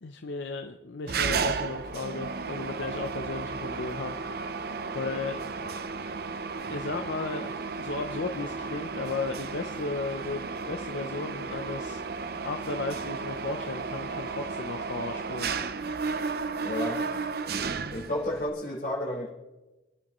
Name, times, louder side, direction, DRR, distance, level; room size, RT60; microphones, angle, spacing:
voice 1, 0.0-4.5 4.9-5.4 6.7-15.5, left 3 dB, 70° left, 6 dB, 0.7 m, -35 dB
Mechanisms, 1.1-18.5, right 4 dB, 55° right, 0.6 m, -33 dB
voice 2, 16.6-17.0 17.9-19.3, left 1 dB, 50° left, -5 dB, 5.2 m, -32 dB
26.5 x 10.0 x 3.1 m, 1.1 s
head